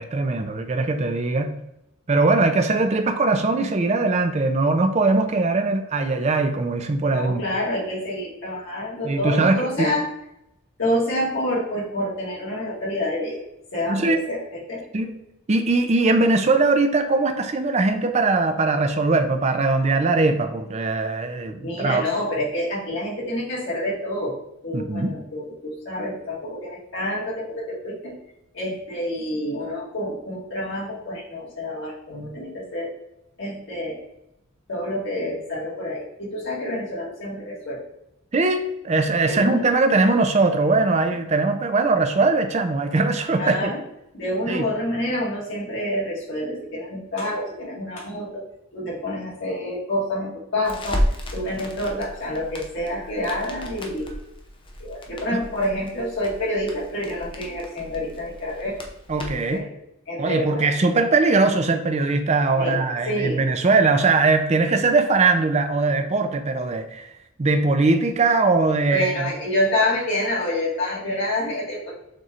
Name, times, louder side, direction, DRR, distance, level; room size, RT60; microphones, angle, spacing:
voice 1, 0.0-1.5 2.1-7.4 9.0-9.9 13.9-14.3 14.9-15.1 15.5-22.0 24.7-25.1 38.3-43.7 44.5-44.7 55.3-55.4 59.1-59.6 60.2-67.1 67.4-69.3, right 3 dB, 30° right, 7 dB, 0.4 m, -21 dB
voice 2, 7.0-10.1 10.8-13.4 13.7-14.4 14.7-14.8 21.6-24.4 24.6-28.1 28.5-32.9 33.4-34.0 34.7-37.8 39.3-39.6 43.3-43.8 44.1-48.4 48.7-51.0 51.3-54.1 54.8-58.8 59.5-59.6 60.1-60.6 62.6-63.4 68.9-71.9, left 1 dB, 55° left, -5 dB, 1.7 m, -27 dB
Crackle, 50.6-59.6, equal, 25° left, 0.5 m, -33 dB
6.6 x 3.1 x 2.5 m, 0.83 s
head